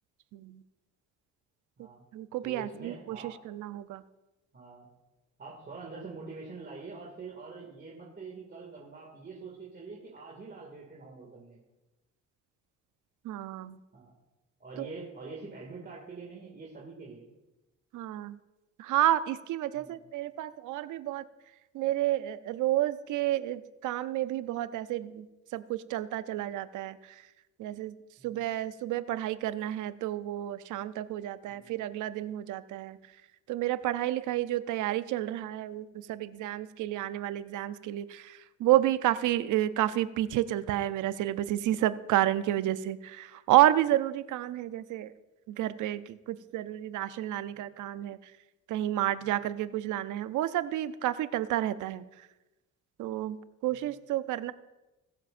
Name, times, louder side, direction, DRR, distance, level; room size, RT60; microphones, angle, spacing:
voice 1, 0.3-0.6 2.1-4.0 13.2-13.8 14.8-14.9 17.9-18.4 18.8-21.2 21.7-25.3 25.5-27.3 27.6-28.0 28.2-33.0 33.5-45.1 45.5-48.3 48.7-52.3 53.0-53.4 53.6-54.5, right 13 dB, 85° right, 14 dB, 0.6 m, -30 dB
voice 2, 2.4-3.4 4.5-4.9 5.4-11.6 13.9-14.1 14.6-17.2 19.7-20.0 28.2-28.4 31.5-31.7 49.2-49.3 53.7-53.8, right 4 dB, 35° right, -3 dB, 2.2 m, -45 dB
21.0 x 7.6 x 2.6 m, 1.0 s
cardioid pair, 90°, 30 cm